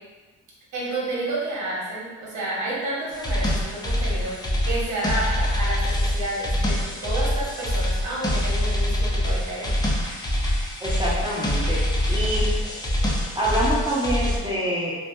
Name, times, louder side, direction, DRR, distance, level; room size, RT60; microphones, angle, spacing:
voice 1, 0.7-9.7, right 1 dB, 75° right, -6 dB, 1.1 m, -30 dB
Metal Riff, 3.1-14.4, left 1 dB, 15° left, 0.5 m, -25 dB
voice 2, 10.8-12.5 13.3-15.0, equal, 15° right, -7 dB, 1.0 m, -26 dB
2.6 x 2.1 x 3.4 m, 1.3 s
cardioid pair, 90°, 30 cm